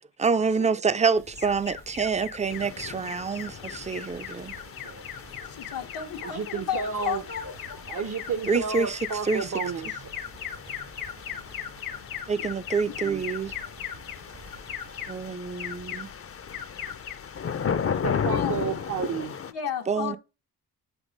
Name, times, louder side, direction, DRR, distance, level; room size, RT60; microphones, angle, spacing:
voice 1, 0.2-4.5 8.5-9.5 12.3-13.5 15.1-16.1 19.9-20.2, right 5 dB, 20° right, 0.4 m, -27 dB
sound 1, 1.1-15.3, right 2 dB, 85° right, 3.2 m, -52 dB
Alarm, 1.3-19.0, left 9 dB, 65° left, 1.0 m, -40 dB
sound 2, 2.5-19.5, left 7 dB, 35° left, 0.5 m, -36 dB
voice 2, 4.7-5.0 6.2-7.2 7.9-10.1 13.0-13.2 17.8-19.4, right 6 dB, 50° right, 0.7 m, -32 dB
voice 3, 5.4-7.5 18.3-18.6 19.5-20.2, left 9 dB, 90° left, 1.1 m, -33 dB
8.2 x 3.4 x 5.1 m
wide cardioid pair, 120°, 38 cm